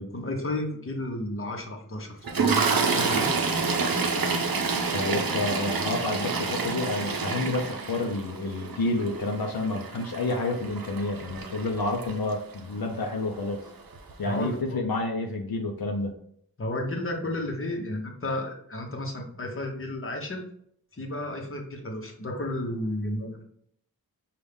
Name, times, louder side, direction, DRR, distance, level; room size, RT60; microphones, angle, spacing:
voice 1, 0.0-3.3 14.2-14.8 16.6-20.4 20.9-23.4, left 1 dB, 35° left, 2 dB, 1.0 m, -32 dB
Toilet flush, 2.2-12.6 13.5-13.7 13.9-14.1, right 4 dB, 70° right, 0.7 m, -28 dB
voice 2, 4.9-13.6 14.2-16.1, left 2 dB, 70° left, 2 dB, 0.6 m, -29 dB
5.3 x 2.4 x 3.4 m, 0.67 s
wide cardioid pair, 60°, 37 cm